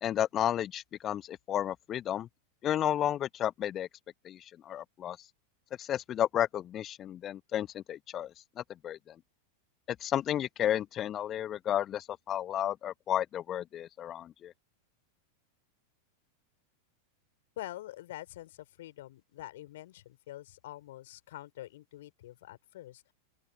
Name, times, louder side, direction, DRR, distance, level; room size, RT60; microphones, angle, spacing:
voice 1, 0.0-2.3 2.6-3.9 4.2-5.2 5.8-9.1 9.9-14.5, left 11 dB, 30° left, 1.0 m, -32 dB
voice 2, 17.6-23.1, left 15 dB, 55° left, 4.4 m, -46 dB
open air
figure-of-eight pair, 90°, 0 cm